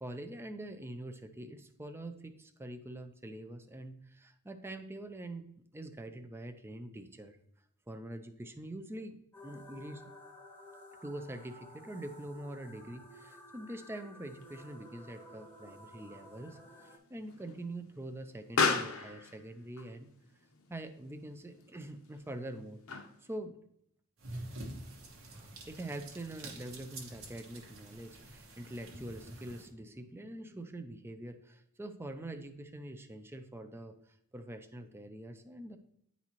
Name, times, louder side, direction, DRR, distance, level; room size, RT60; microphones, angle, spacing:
voice 1, 0.0-7.4 7.9-10.0 11.0-20.1 20.7-22.8 23.2-23.6 25.7-35.8, right 1 dB, 10° right, 8 dB, 0.4 m, -44 dB
sound 1, 9.3-17.0, left 1 dB, 10° left, 0.9 m, -53 dB
Explosion, 14.4-23.4, left 4 dB, 75° left, 0.8 m, -38 dB
sound 2, 24.2-29.7, right 1 dB, 70° right, 1.1 m, -47 dB
9.4 x 4.1 x 3.0 m, 0.73 s
head